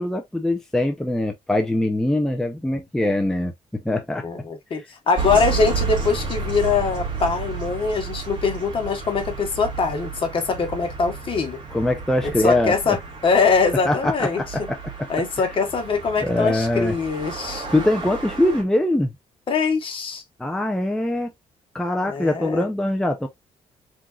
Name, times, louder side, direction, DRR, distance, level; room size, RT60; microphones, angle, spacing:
voice 1, 0.0-3.5 3.8-4.2 11.7-13.0 13.9-14.8 16.2-17.0 17.7-19.1 20.4-21.3 21.7-23.3, left 1 dB, 5° left, 0.7 m, -22 dB
voice 2, 4.2-11.6 12.4-14.4 15.1-17.7 19.5-20.2 22.1-22.7, left 4 dB, 45° left, 1.4 m, -23 dB
sound 1, 5.2-18.6, right 4 dB, 35° right, 2.0 m, -32 dB
4.5 x 3.8 x 2.5 m
cardioid pair, 145°, 13 cm